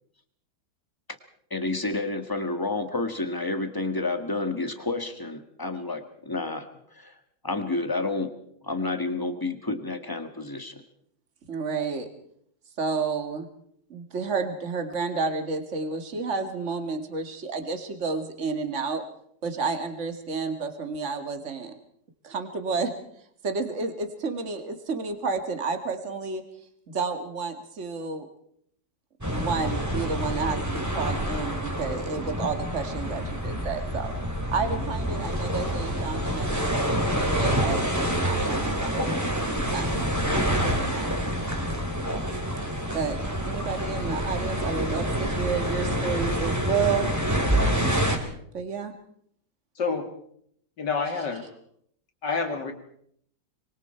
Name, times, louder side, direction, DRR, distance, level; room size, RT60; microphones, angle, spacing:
voice 1, 1.5-7.1 7.4-8.4 8.6-10.8, left 2 dB, 10° left, 7 dB, 1.9 m, -30 dB
voice 2, 11.5-12.1 12.8-13.5 13.9-19.0 19.4-21.7 22.2-22.9 23.4-26.4 26.9-28.3 29.3-34.1 34.5-39.2 39.7-40.1 40.6-41.1 42.9-43.2 43.5-47.1 47.6-48.0 48.5-48.9, right 4 dB, 40° right, 7 dB, 2.3 m, -31 dB
sound 1, 29.2-48.2, equal, 10° right, 3.1 m, -27 dB
voice 3, 49.8-50.1 50.8-51.5 52.2-52.7, left 4 dB, 75° left, 5 dB, 3.3 m, -28 dB
25.5 x 24.0 x 4.5 m, 0.68 s
omnidirectional pair, 1.9 m